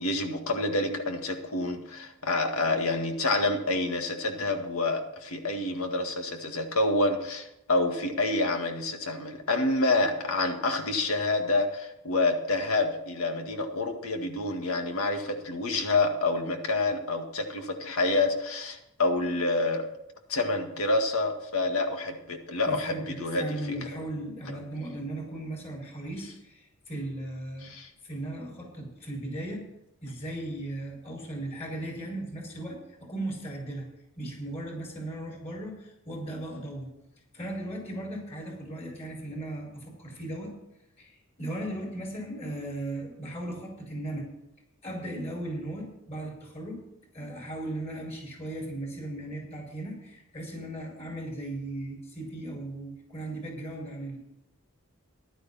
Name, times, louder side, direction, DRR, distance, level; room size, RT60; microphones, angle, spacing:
voice 1, 0.0-19.8 20.3-23.6 24.5-24.6 27.6-27.9, left 2 dB, 90° left, 5 dB, 1.9 m, -28 dB
voice 2, 22.6-23.1 23.4-27.7 28.0-29.6 30.0-33.9 34.2-36.9 37.3-40.5 41.0-44.3 44.8-46.8 47.1-54.2, right 1 dB, 30° left, 0 dB, 5.5 m, -37 dB
15.0 x 11.5 x 4.2 m, 0.85 s
head